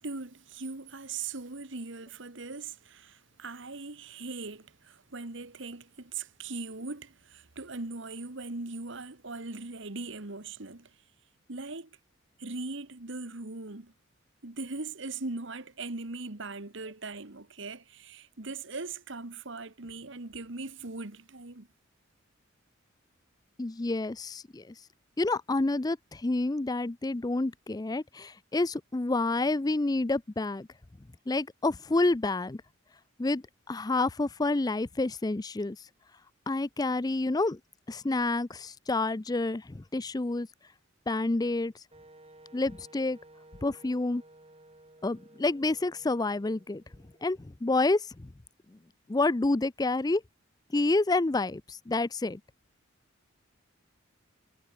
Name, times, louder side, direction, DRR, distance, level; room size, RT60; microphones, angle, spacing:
voice 1, 0.0-10.9 11.5-11.9 12.4-13.9 14.4-21.7, right 3 dB, 65° right, 1.7 m, -40 dB
voice 2, 23.6-24.7 25.2-30.7 31.3-32.6 33.2-35.9 36.5-37.6 37.9-40.5 41.1-41.7 42.5-43.2 43.6-44.2 45.0-46.8 47.2-48.3 49.1-50.2 50.7-52.4, left 2 dB, 20° left, 0.5 m, -29 dB
Wind instrument woodwind instrument, 41.9-47.7, right 1 dB, 30° right, 6.0 m, -56 dB
head